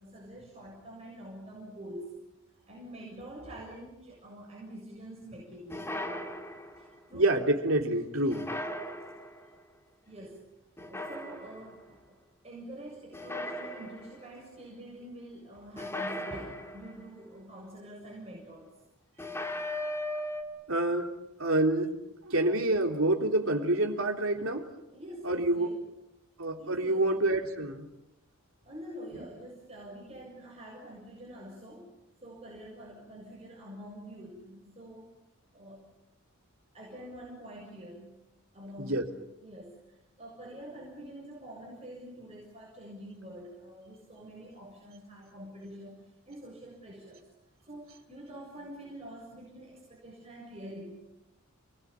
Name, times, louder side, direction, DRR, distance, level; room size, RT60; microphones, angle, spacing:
voice 1, 0.0-2.2 2.7-5.7 6.5-7.3 8.9-9.1 10.1-10.4 10.9-12.0 12.4-18.7 24.9-25.8 26.6-27.1 28.6-31.9 32.2-35.1 35.5-35.9 36.7-38.1 38.5-39.1 39.4-47.3 47.7-50.9, equal, 30° right, -4 dB, 7.4 m, -46 dB
sound 1, 5.7-6.9 8.3-9.5 10.8-11.8 13.1-14.3 15.8-17.1 19.2-20.4, left 1 dB, 10° left, 2.5 m, -37 dB
voice 2, 7.1-8.5 20.7-21.1 21.4-22.0 22.2-24.6 25.2-25.7 26.4-27.9 38.8-39.1, right 2 dB, 65° right, 3 dB, 3.6 m, -27 dB
29.0 x 21.0 x 8.9 m, 0.91 s
head